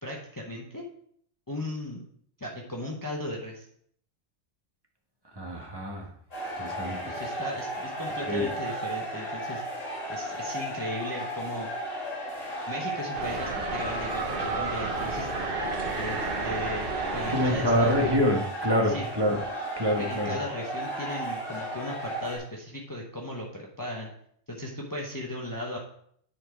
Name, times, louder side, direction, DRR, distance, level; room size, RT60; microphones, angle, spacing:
voice 1, 0.0-0.8 1.5-2.0 2.4-3.7 7.1-9.6 10.1-11.7 12.7-15.3 16.0-18.0 18.9-19.1 20.0-24.1 24.5-25.8, left 1 dB, 20° left, -1 dB, 1.0 m, -36 dB
voice 2, 5.4-6.1 6.6-7.1 8.3-8.5 17.3-19.4 19.8-20.4, left 1 dB, 20° right, 0 dB, 1.4 m, -26 dB
sound 1, 6.3-22.4, right 1 dB, 85° left, 2.9 m, -34 dB
sound 2, 13.1-18.2, right 3 dB, 50° right, 1.1 m, -33 dB
10.0 x 4.4 x 4.5 m, 0.66 s
omnidirectional pair, 1.3 m